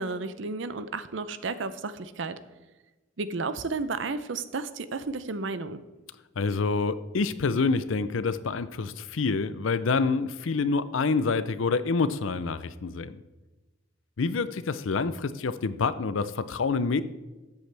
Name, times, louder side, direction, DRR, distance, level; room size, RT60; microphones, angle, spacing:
voice 1, 0.0-2.4 3.2-5.8, right 3 dB, 65° right, 12 dB, 0.6 m, -32 dB
voice 2, 6.4-13.2 14.2-17.0, left 4 dB, 75° left, 14 dB, 0.5 m, -27 dB
13.5 x 8.1 x 3.4 m, 1.1 s
head